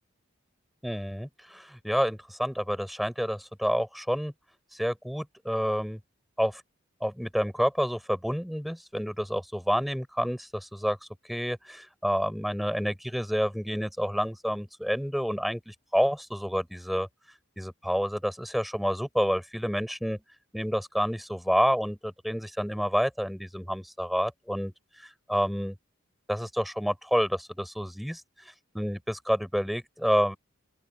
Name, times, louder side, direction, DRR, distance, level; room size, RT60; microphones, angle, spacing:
voice 1, 0.8-4.3 4.7-6.0 6.4-6.6 7.0-11.0 11.3-17.1 17.6-20.2 20.5-24.7 25.0-25.8 26.3-28.2 28.7-30.4, equal, ahead, 7.4 m, -29 dB
open air
head